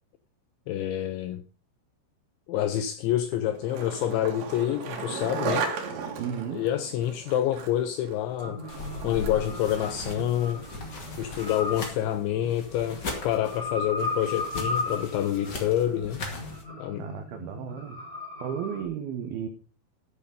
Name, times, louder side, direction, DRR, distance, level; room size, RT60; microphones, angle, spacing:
voice 1, 0.7-1.4 2.5-5.7 6.5-8.6 9.0-10.6 11.2-16.2 16.8-17.1, left 11 dB, 80° left, 2.7 m, -27 dB
Skateboard, 3.3-11.7, right 5 dB, 65° right, 3.8 m, -36 dB
voice 2, 6.2-6.7 17.0-19.5, right 8 dB, 85° right, 2.1 m, -34 dB
sound 1, 8.4-18.8, left 2 dB, 10° left, 3.1 m, -37 dB
sound 2, 8.7-16.6, left 3 dB, 60° left, 1.1 m, -39 dB
13.0 x 6.6 x 5.2 m
omnidirectional pair, 5.9 m